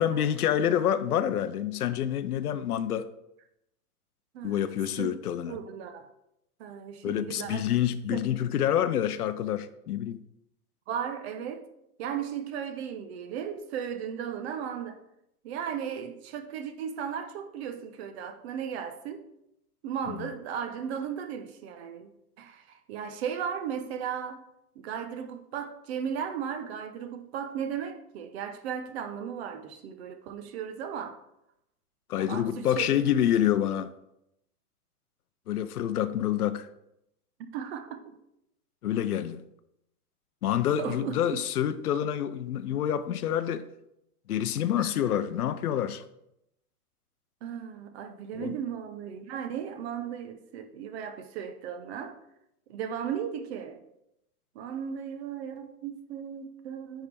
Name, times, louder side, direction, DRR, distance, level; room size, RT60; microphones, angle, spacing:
voice 1, 0.0-3.1 4.4-5.6 7.0-10.2 20.1-20.3 32.1-33.9 35.5-36.7 38.8-39.4 40.4-43.6 44.3-46.0 48.3-48.5, left 10 dB, 70° left, 0.6 m, -27 dB
voice 2, 4.3-5.1 5.5-6.1 6.6-7.7 8.1-8.2 10.9-11.7 12.0-15.0 15.4-19.3 19.8-22.1 22.4-24.5 24.8-31.2 32.2-32.9 37.4-38.2 40.8-41.2 44.8-44.9 47.4-52.2 52.7-53.8 54.5-57.1, right 8 dB, 45° right, 0.8 m, -36 dB
10.0 x 3.7 x 3.4 m
hypercardioid pair, 110°, 46 cm